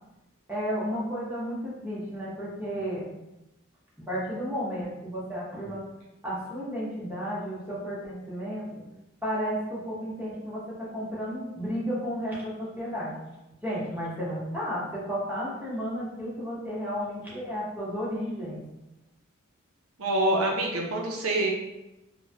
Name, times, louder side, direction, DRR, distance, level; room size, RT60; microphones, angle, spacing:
voice 1, 0.5-3.1 4.1-5.8 6.2-8.8 9.2-10.6 10.9-13.1 13.6-18.6, equal, 10° right, -8 dB, 0.8 m, -32 dB
voice 2, 20.0-21.5, right 1 dB, 80° right, 0 dB, 0.6 m, -26 dB
3.1 x 2.2 x 2.7 m, 0.95 s
head